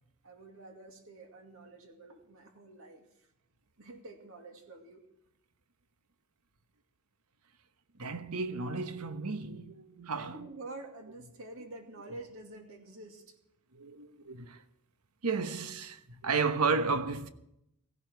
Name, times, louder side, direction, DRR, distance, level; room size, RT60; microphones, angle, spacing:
voice 1, 0.2-3.3 3.8-5.0 10.1-13.4, right 2 dB, 65° right, 2.4 m, -48 dB
voice 2, 8.0-10.4 13.7-14.6 15.2-17.3, right 4 dB, 90° right, 1.1 m, -33 dB
17.0 x 16.0 x 4.6 m
head